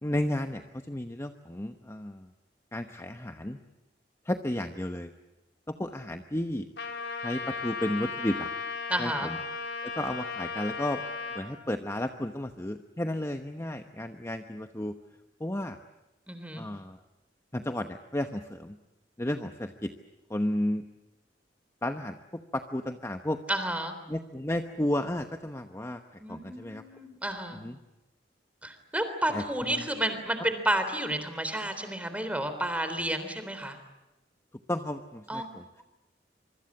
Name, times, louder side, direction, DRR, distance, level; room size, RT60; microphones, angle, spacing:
voice 1, 0.0-2.3 2.7-3.6 4.2-5.1 5.7-6.7 7.2-8.5 9.0-9.4 9.8-11.0 11.3-14.9 15.4-15.8 16.6-17.0 17.5-18.8 19.2-19.9 20.3-20.8 21.8-23.4 24.1-26.8 27.5-27.8 29.3-29.4 29.7-29.9 34.7-35.8, left 1 dB, 15° left, 7 dB, 1.0 m, -33 dB
Trumpet, 6.8-11.4, left 4 dB, 80° left, 4.4 m, -36 dB
voice 2, 8.9-9.3 16.3-16.6 23.5-23.9 26.2-27.6 28.6-33.8 35.3-35.4, right 1 dB, 10° right, 9 dB, 3.5 m, -31 dB
26.0 x 24.0 x 8.6 m, 0.99 s
head